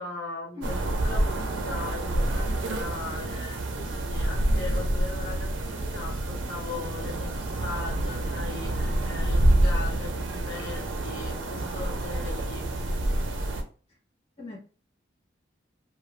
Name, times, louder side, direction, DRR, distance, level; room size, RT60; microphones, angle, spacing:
voice 1, 0.0-0.8 1.0-12.7, left 3 dB, 75° left, -2 dB, 1.0 m, -39 dB
voice 2, 0.5-1.0 2.9-3.3 13.9-14.0 14.4-14.6, left 2 dB, 30° left, -6 dB, 0.8 m, -42 dB
sound 1, 0.6-13.6, right 1 dB, 75° right, 0.5 m, -27 dB
2.5 x 2.3 x 3.1 m, 0.38 s
head